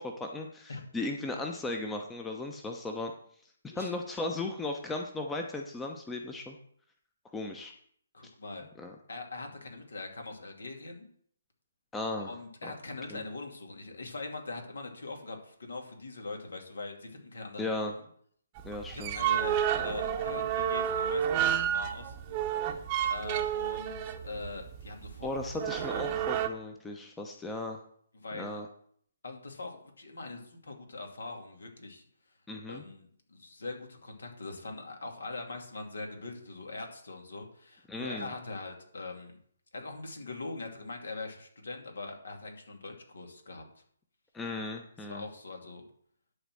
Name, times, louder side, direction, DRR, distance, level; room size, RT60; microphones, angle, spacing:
voice 1, 0.0-3.1 3.6-6.6 7.3-7.7 8.8-8.9 11.9-12.3 12.6-12.7 13.1-13.2 17.6-17.9 18.6-19.2 25.2-27.8 28.3-28.7 32.5-32.8 37.9-38.3 44.3-45.3, left 2 dB, 10° left, 3 dB, 0.9 m, -36 dB
voice 2, 8.1-8.7 9.1-11.1 12.3-17.8 18.9-22.4 23.1-25.3 25.7-26.0 28.1-28.6 29.2-32.1 32.7-39.4 39.7-43.8 45.1-45.8, left 3 dB, 70° left, 3 dB, 2.6 m, -42 dB
sound 1, 18.6-26.5, right 9 dB, 30° right, 0.9 m, -30 dB
11.0 x 4.2 x 6.3 m, 0.62 s
figure-of-eight pair, 140°, 0 cm